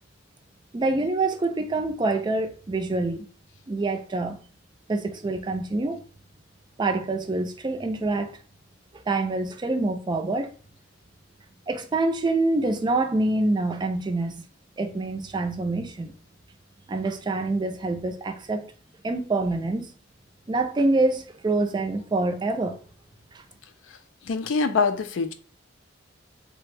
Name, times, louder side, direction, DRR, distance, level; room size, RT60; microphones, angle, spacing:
voice 1, 0.7-3.2 3.7-4.4 4.9-6.0 6.8-8.4 9.1-10.5 11.7-14.5 14.8-16.1 16.9-18.7 19.0-19.9 20.5-22.8 23.3-23.4, right 2 dB, 25° right, 0.4 m, -26 dB
voice 2, 24.2-25.3, left 4 dB, 90° left, 0.4 m, -24 dB
3.3 x 2.1 x 3.2 m
head